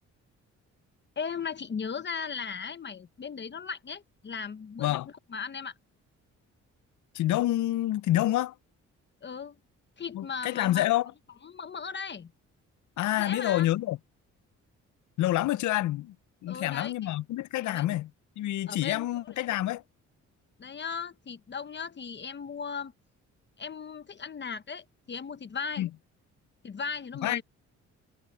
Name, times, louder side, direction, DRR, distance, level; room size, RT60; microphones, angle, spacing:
voice 1, 1.2-5.7 9.2-9.6 10.0-10.9 11.4-12.3 13.2-13.7 16.5-16.9 17.6-18.0 18.7-19.1 20.6-22.9 23.6-25.9 26.6-27.4, left 6 dB, 35° left, 1.1 m, -37 dB
voice 2, 7.1-8.5 10.1-11.1 13.0-14.0 15.2-16.1 16.4-18.1 18.4-19.8 25.8-25.9 27.2-27.4, left 14 dB, 75° left, 0.7 m, -27 dB
cardioid pair, 90°, 30 cm